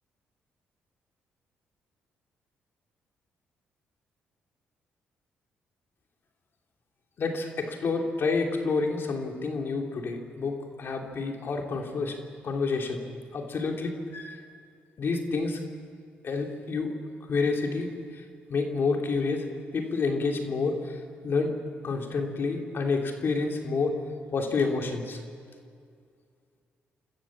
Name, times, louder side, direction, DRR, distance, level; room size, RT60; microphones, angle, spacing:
voice 1, 7.2-12.2 12.4-13.0 13.3-14.4 15.0-15.6 16.2-17.0 17.2-18.2 18.5-19.5 19.7-21.5 21.8-24.0 24.3-25.2, left 4 dB, 55° left, 2 dB, 3.0 m, -29 dB
27.0 x 14.0 x 7.4 m, 2.2 s
supercardioid pair, 70°, 4 cm